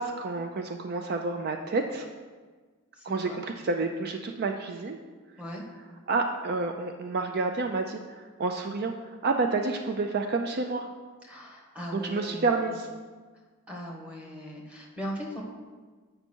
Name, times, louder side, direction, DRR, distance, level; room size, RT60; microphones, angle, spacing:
voice 1, 0.0-2.1 3.0-5.0 6.1-10.9 11.9-12.9, right 3 dB, 50° right, 5 dB, 0.4 m, -29 dB
voice 2, 2.9-3.4 5.4-5.6 11.2-12.6 13.7-15.4, equal, 5° right, -3 dB, 1.3 m, -39 dB
8.2 x 5.3 x 4.4 m, 1.4 s
head